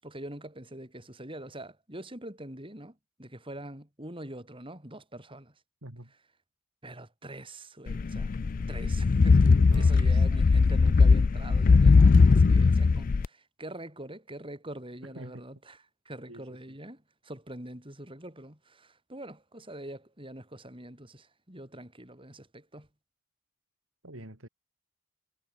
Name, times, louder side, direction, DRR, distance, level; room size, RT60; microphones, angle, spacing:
voice 1, 0.0-5.5 6.8-8.4 8.7-22.9, right 1 dB, 25° right, 7.8 m, -44 dB
sound 1, 7.9-13.3, left 4 dB, 40° left, 0.4 m, -20 dB
voice 2, 9.4-10.2 15.0-15.4 16.3-16.8 24.0-24.5, right 1 dB, 75° right, 3.9 m, -45 dB
head